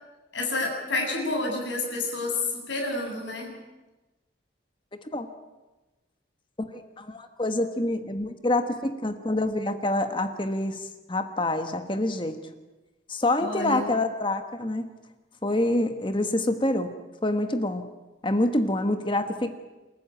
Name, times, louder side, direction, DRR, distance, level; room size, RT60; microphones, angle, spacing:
voice 1, 0.3-3.5 13.4-13.9, left 2 dB, 80° left, 1 dB, 7.8 m, -29 dB
voice 2, 6.6-12.4 13.1-14.9 15.4-16.9 17.2-17.8 18.2-19.6, left 1 dB, 25° left, 8 dB, 1.4 m, -26 dB
28.5 x 14.0 x 9.2 m, 1.1 s
head